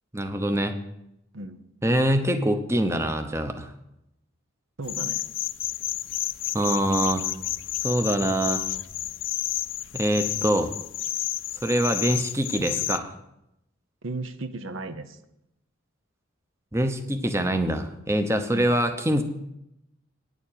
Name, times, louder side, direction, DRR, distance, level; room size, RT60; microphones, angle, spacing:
voice 1, 0.1-0.7 1.8-3.7 6.5-7.3 7.8-8.6 9.9-10.7 11.6-13.1 16.7-19.2, right 1 dB, 15° right, 7 dB, 0.7 m, -24 dB
sound 1, 4.8-13.0, left 14 dB, 65° left, 0.5 m, -31 dB
voice 2, 4.8-5.3 14.0-15.2 18.5-18.8, right 2 dB, 70° right, 10 dB, 0.8 m, -35 dB
9.8 x 7.1 x 9.0 m, 0.83 s
head